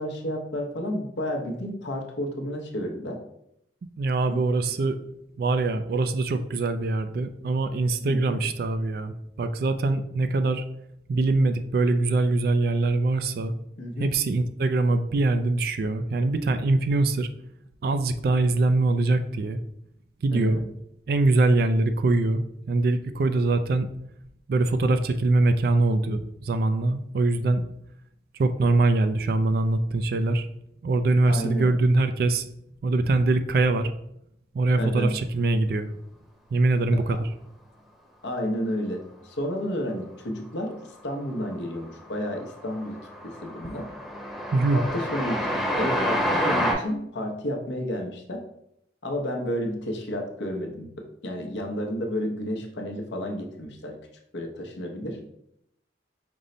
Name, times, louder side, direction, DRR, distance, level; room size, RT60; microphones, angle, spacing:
voice 1, 0.0-3.2 4.3-4.4 8.0-8.4 13.8-14.1 20.3-20.7 31.3-31.7 34.8-35.1 37.1-37.2 38.2-40.8 41.0-42.9 43.2-43.9 44.7-48.4 49.0-54.0 54.3-55.2, equal, 80° left, 2 dB, 0.7 m, -31 dB
voice 2, 4.0-5.0 5.4-10.6 11.1-13.5 14.0-17.3 17.8-19.6 20.2-20.6 21.1-23.9 24.5-27.6 28.3-30.5 30.8-32.5 32.8-33.9 34.5-35.9 36.5-37.3 44.5-44.8, right 2 dB, 55° right, 10 dB, 0.3 m, -23 dB
Train, 41.0-41.5 41.8-46.7, equal, ahead, 0.8 m, -28 dB
5.3 x 2.1 x 3.8 m, 0.76 s
head